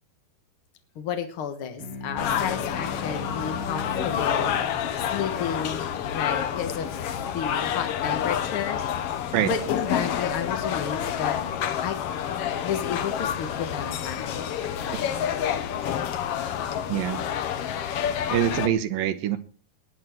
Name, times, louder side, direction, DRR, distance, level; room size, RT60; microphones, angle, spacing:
voice 1, 0.9-5.9 6.1-6.9 7.3-8.8 9.1-11.4 11.8-12.0 12.6-14.5, left 7 dB, 60° left, 6 dB, 1.4 m, -32 dB
sound 1, 1.8-6.6, left 1 dB, 40° left, 3.3 m, -39 dB
sound 2, 2.2-18.7, left 9 dB, 85° left, 1.3 m, -28 dB
voice 2, 16.9-17.2 18.3-19.4, right 11 dB, 75° right, 10 dB, 2.5 m, -24 dB
20.0 x 9.4 x 4.5 m, 0.40 s
omnidirectional pair, 4.3 m